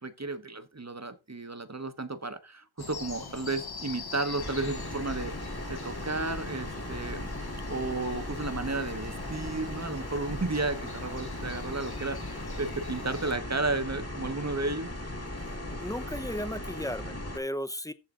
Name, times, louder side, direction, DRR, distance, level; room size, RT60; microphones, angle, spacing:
voice 1, 0.0-7.3 7.7-14.9, right 3 dB, 35° right, 1.1 m, -33 dB
sound 1, 2.8-13.4, left 4 dB, 50° left, 1.1 m, -44 dB
sound 2, 4.4-17.4, left 1 dB, 30° left, 1.7 m, -38 dB
voice 2, 15.4-17.9, equal, 5° left, 0.7 m, -35 dB
14.5 x 4.9 x 3.7 m
wide cardioid pair, 45°, 47 cm